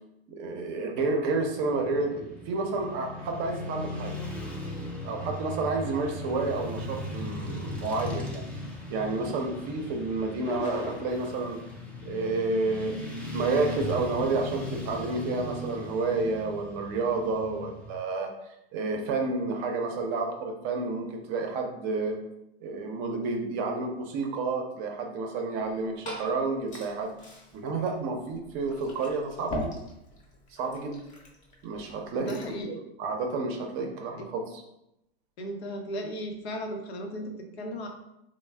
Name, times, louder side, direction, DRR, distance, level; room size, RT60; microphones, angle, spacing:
voice 1, 0.3-4.1 5.0-8.4 8.9-11.6 12.0-12.9 13.3-18.3 18.7-22.2 22.6-27.1 27.5-29.7 30.5-31.0 31.6-32.4 32.7-34.6, right 3 dB, 40° right, 3 dB, 0.6 m, -30 dB
Motorcycle / Traffic noise roadway noise, 1.3-18.0, left 2 dB, 5° left, 0.4 m, -38 dB
sound 1, 10.4-11.3, left 4 dB, 55° left, 0.8 m, -36 dB
Glass / Fill (with liquid), 25.6-32.6, left 1 dB, 25° left, 0.8 m, -42 dB
voice 2, 32.1-32.8 33.8-33.9 35.4-37.9, equal, 85° left, 3 dB, 0.8 m, -36 dB
3.1 x 2.1 x 3.2 m, 0.84 s
hypercardioid pair, 120°, 31 cm